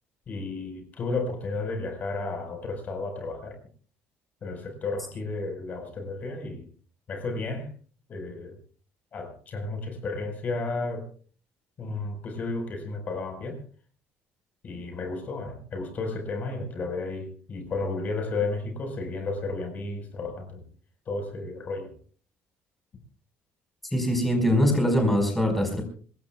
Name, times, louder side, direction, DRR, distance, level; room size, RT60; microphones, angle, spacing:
voice 1, 0.3-3.6 4.4-6.7 7.1-7.7 8.1-8.6 9.1-11.1 11.8-13.6 14.6-20.6 21.1-21.9, left 3 dB, 35° left, 5 dB, 4.8 m, -33 dB
voice 2, 23.9-25.8, equal, 5° left, 3 dB, 5.0 m, -22 dB
26.0 x 20.5 x 2.4 m, 0.43 s
cardioid pair, 170°, 5 cm